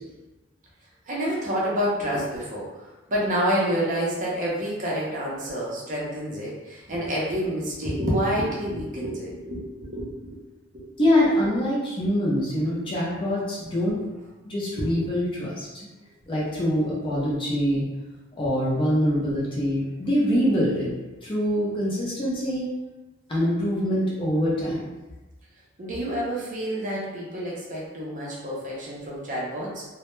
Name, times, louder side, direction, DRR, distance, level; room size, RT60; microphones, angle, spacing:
voice 1, 1.1-2.7 3.1-10.4 10.7-10.9 14.8-14.9 25.8-29.9, equal, 35° right, -5 dB, 0.5 m, -28 dB
voice 2, 11.0-14.0 14.4-15.9 16.3-17.8 18.4-20.9 21.2-22.7 23.3-24.9, equal, 25° left, -5 dB, 0.4 m, -24 dB
2.1 x 2.1 x 3.0 m, 1.1 s
head